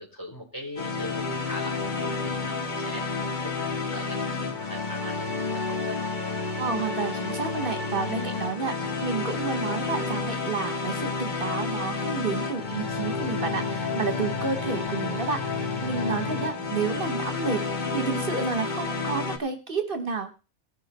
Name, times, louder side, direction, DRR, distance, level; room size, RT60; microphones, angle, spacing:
voice 1, 0.0-3.1 3.4-6.0 16.5-17.2, left 1 dB, 15° left, 0 dB, 4.0 m, -41 dB
sound 1, 0.8-19.4, left 4 dB, 40° left, 1.7 m, -30 dB
voice 2, 6.6-20.5, right 4 dB, 50° right, 6 dB, 1.3 m, -30 dB
19.0 x 6.5 x 4.1 m, 0.32 s
omnidirectional pair, 1.2 m